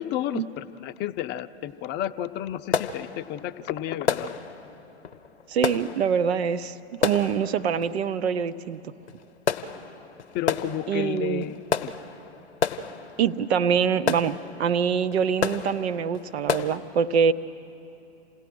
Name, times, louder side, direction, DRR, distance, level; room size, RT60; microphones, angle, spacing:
voice 1, 0.0-4.4 10.3-11.9, left 11 dB, 35° left, 11 dB, 0.6 m, -32 dB
sound 1, 1.7-1.9 2.2-16.8, left 6 dB, 85° left, 0.8 m, -32 dB
voice 2, 5.5-8.8 10.9-11.4 13.2-17.3, right 7 dB, 70° right, 13 dB, 0.8 m, -24 dB
27.5 x 17.0 x 6.1 m, 2.9 s
hypercardioid pair, 95°, 33 cm